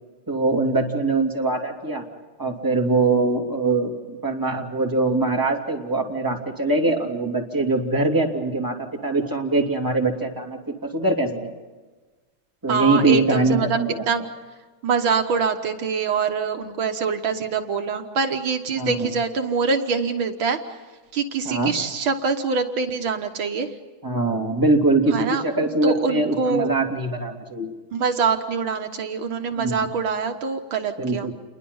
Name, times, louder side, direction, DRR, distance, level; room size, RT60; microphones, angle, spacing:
voice 1, 0.3-2.0 2.4-10.6 10.9-11.5 12.6-14.0 18.8-19.1 21.4-21.7 24.0-27.7 29.6-29.8 31.0-31.3, right 2 dB, 10° right, 0 dB, 2.9 m, -22 dB
voice 2, 12.7-14.2 14.8-20.6 21.1-23.7 25.1-26.7 27.9-31.3, right 5 dB, 75° right, 6 dB, 2.1 m, -24 dB
29.0 x 22.5 x 5.6 m, 1.3 s
omnidirectional pair, 2.2 m